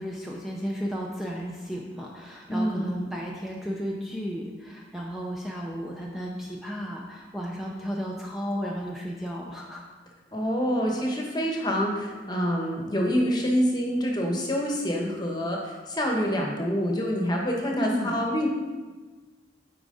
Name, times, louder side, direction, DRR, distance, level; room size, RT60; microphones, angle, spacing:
voice 1, 0.0-9.9 17.8-18.2, equal, ahead, -2 dB, 0.6 m, -34 dB
voice 2, 2.5-3.1 10.3-18.5, equal, 25° left, 0 dB, 1.1 m, -26 dB
8.9 x 4.7 x 3.9 m, 1.3 s
head